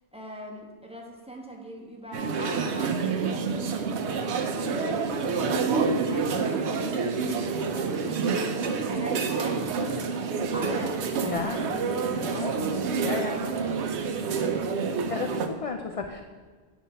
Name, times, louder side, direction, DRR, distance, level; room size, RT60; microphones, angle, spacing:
voice 1, 0.1-10.1 10.4-12.5 13.0-13.5 13.8-14.8, right 1 dB, 5° right, 0 dB, 1.1 m, -42 dB
sound 1, 2.1-15.5, right 5 dB, 80° right, 1.0 m, -28 dB
voice 2, 11.2-11.6 12.1-12.6 13.0-13.4 15.1-16.2, left 5 dB, 50° left, 5 dB, 0.4 m, -33 dB
9.2 x 4.4 x 5.5 m, 1.5 s
omnidirectional pair, 1.1 m